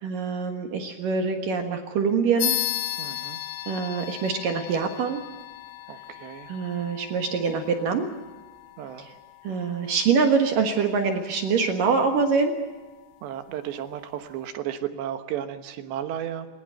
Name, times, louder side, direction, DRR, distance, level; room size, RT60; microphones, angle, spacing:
voice 1, 0.0-2.5 3.7-5.2 6.5-8.1 9.0-9.1 9.4-12.5, right 5 dB, 60° right, 5 dB, 2.7 m, -24 dB
sound 1, 2.4-12.4, left 14 dB, 85° left, 3.7 m, -36 dB
voice 2, 3.0-3.4 5.9-6.5 8.8-9.1 13.2-16.5, right 10 dB, 75° right, 9 dB, 3.4 m, -34 dB
21.0 x 20.0 x 7.8 m, 1.2 s
omnidirectional pair, 5.1 m